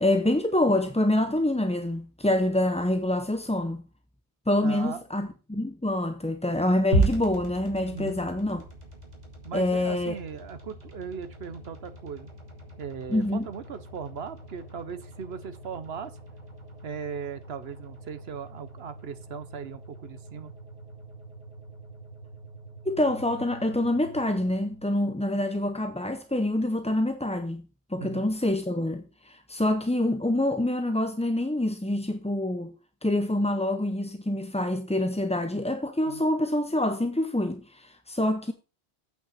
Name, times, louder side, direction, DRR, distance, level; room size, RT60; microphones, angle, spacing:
voice 1, 0.0-3.8 4.5-8.6 9.5-10.2 13.1-13.5 22.9-27.6 27.9-32.7 33.0-38.5, left 1 dB, 10° left, 0.5 m, -26 dB
voice 2, 4.6-5.0 7.9-8.2 9.4-12.3 12.8-16.1 16.8-20.5 25.4-25.5 28.0-28.3 36.1-36.2, right 6 dB, 65° right, 1.0 m, -38 dB
sound 1, 6.9-25.1, right 2 dB, 35° right, 2.9 m, -37 dB
8.6 x 5.9 x 5.7 m
omnidirectional pair, 1.2 m